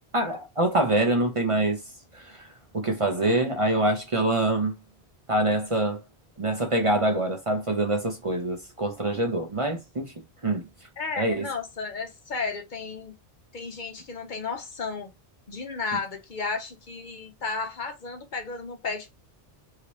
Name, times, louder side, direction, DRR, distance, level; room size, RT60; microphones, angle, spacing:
voice 1, 0.1-1.8 2.1-2.5 2.7-4.7 5.3-6.0 6.4-10.1 10.4-10.7 11.2-11.5, right 2 dB, 35° right, 0.6 m, -25 dB
voice 2, 11.0-13.1 13.5-15.1 15.5-19.1, left 4 dB, 55° left, 0.8 m, -33 dB
3.3 x 2.8 x 2.9 m
omnidirectional pair, 1.1 m